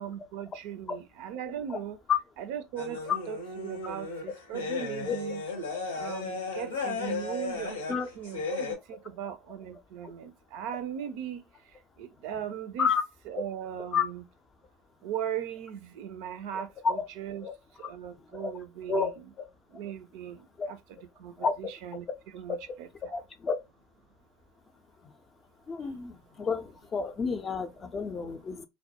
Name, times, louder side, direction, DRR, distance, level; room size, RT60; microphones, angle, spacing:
voice 1, 0.0-2.0 2.4-3.0 3.3-3.4 3.6-5.4 5.9-7.7 8.2-11.4 12.0-12.9 13.3-14.2 15.0-17.5 17.8-19.1 19.7-20.4 20.7-20.8 21.2-22.1 22.3-23.2, right 9 dB, 60° right, 0.3 m, -38 dB
sound 1, 2.8-8.7, left 4 dB, 80° left, 0.7 m, -35 dB
voice 2, 16.5-17.0 17.4-17.5 18.3-18.5 18.9-19.1 19.4-19.5 20.6-20.7 21.4-21.5 23.1-23.5 25.7-28.7, left 6 dB, 30° left, 0.4 m, -29 dB
2.2 x 2.1 x 2.7 m
hypercardioid pair, 80°, 0 cm